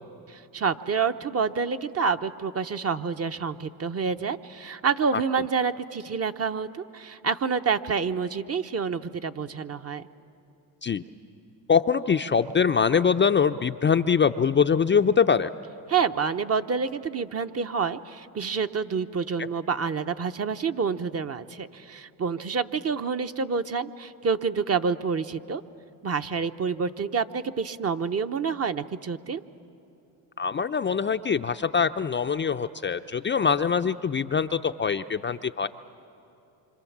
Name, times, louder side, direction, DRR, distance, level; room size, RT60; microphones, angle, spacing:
voice 1, 0.3-10.1 15.9-25.6 26.0-29.4, right 5 dB, 35° right, 9 dB, 0.9 m, -28 dB
voice 2, 11.7-15.5 19.4-19.5 30.4-35.7, left 6 dB, 25° left, 8 dB, 0.5 m, -23 dB
26.5 x 26.0 x 7.3 m, 2.7 s
supercardioid pair, 75°, 45 cm